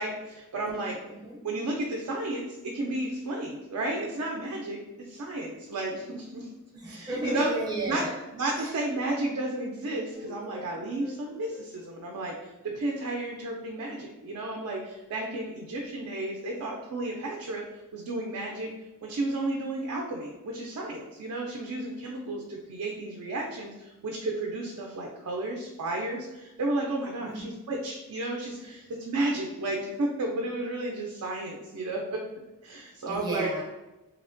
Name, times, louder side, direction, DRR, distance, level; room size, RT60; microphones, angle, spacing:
voice 1, 0.0-1.0 1.4-6.5 6.8-7.5 7.9-8.0 8.3-17.6 17.9-18.7 19.0-32.2 32.6-33.5, right 2 dB, 80° right, 0 dB, 0.4 m, -32 dB
voice 2, 6.7-8.2 8.6-8.7 27.2-27.4 33.1-33.6, right 2 dB, 20° right, -2 dB, 0.4 m, -33 dB
sound 1, 10.1-13.1, left 1 dB, 80° left, 1.1 m, -49 dB
2.9 x 2.1 x 2.5 m, 1.0 s
head